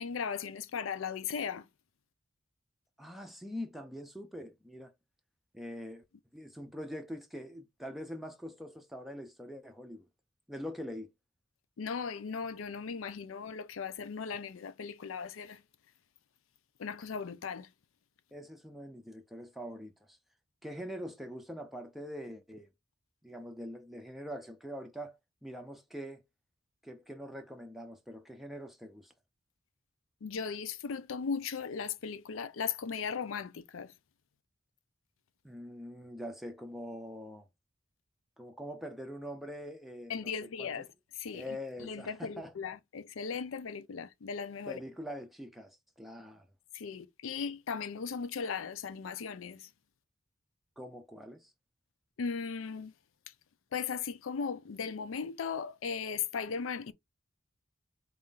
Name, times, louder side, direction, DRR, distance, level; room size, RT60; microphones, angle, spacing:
voice 1, 0.0-1.7 11.8-15.6 16.8-17.7 30.2-33.9 40.1-40.9 41.1-44.8 46.7-49.7 52.2-52.9 53.7-56.9, left 6 dB, 75° left, 0.5 m, -37 dB
voice 2, 3.0-4.9 5.5-6.0 6.3-10.1 10.5-11.1 18.3-20.2 20.6-22.7 23.2-26.2 26.8-29.1 35.4-37.5 38.4-40.3 40.6-40.8 41.3-42.5 44.7-46.5 50.8-51.5, equal, ahead, 0.5 m, -43 dB
4.3 x 2.5 x 3.7 m
head